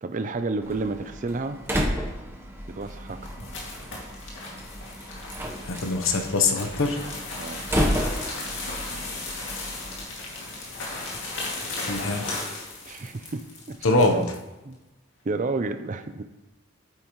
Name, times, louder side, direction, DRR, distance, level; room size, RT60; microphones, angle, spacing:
voice 1, 0.0-1.6 2.7-3.2 7.4-7.7 12.9-14.3 14.6-14.8 15.2-16.2, right 3 dB, 40° right, 10 dB, 0.5 m, -30 dB
Slam, 0.6-10.1, equal, 10° right, 0.9 m, -32 dB
sound 1, 2.7-14.4, left 2 dB, 65° left, 2.3 m, -36 dB
voice 2, 5.7-7.0 11.9-12.2 13.8-14.2, left 3 dB, 85° left, 5 dB, 0.9 m, -23 dB
9.2 x 8.6 x 3.1 m, 1.1 s
head